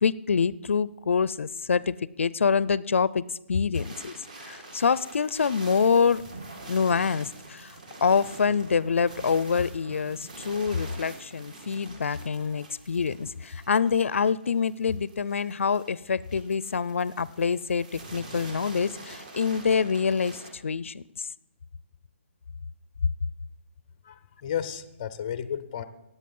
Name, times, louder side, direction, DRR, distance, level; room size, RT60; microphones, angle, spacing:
voice 1, 0.0-3.2 3.5-4.1 4.5-6.2 6.7-7.7 8.0-21.0, left 6 dB, 75° left, 20 dB, 0.5 m, -26 dB
sound 1, 3.7-20.5, right 2 dB, 35° right, 1.9 m, -45 dB
voice 2, 24.0-25.8, left 9 dB, 20° left, 12 dB, 0.5 m, -33 dB
18.0 x 8.2 x 5.4 m, 0.92 s
hypercardioid pair, 180°, 7 cm